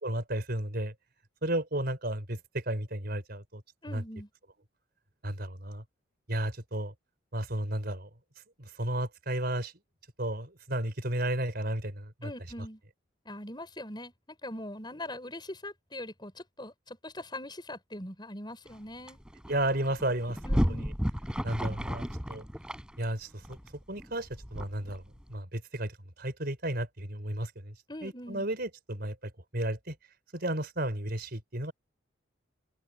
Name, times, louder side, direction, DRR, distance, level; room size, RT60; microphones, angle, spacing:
voice 1, 0.0-0.9 1.4-3.6 3.9-4.0 5.2-5.8 6.3-6.9 7.3-8.1 8.6-9.7 10.2-12.3 19.5-20.8 21.4-22.4 23.0-23.6 23.9-25.0 25.3-27.7 28.0-30.0 30.3-31.7, right 1 dB, 50° right, 5.0 m, -33 dB
voice 2, 3.8-4.3 12.2-12.8 13.3-19.2 20.4-20.9 27.9-28.5, left 1 dB, 20° left, 7.0 m, -42 dB
sound 1, 18.7-18.8 19.1-25.3, equal, 5° right, 7.6 m, -33 dB
head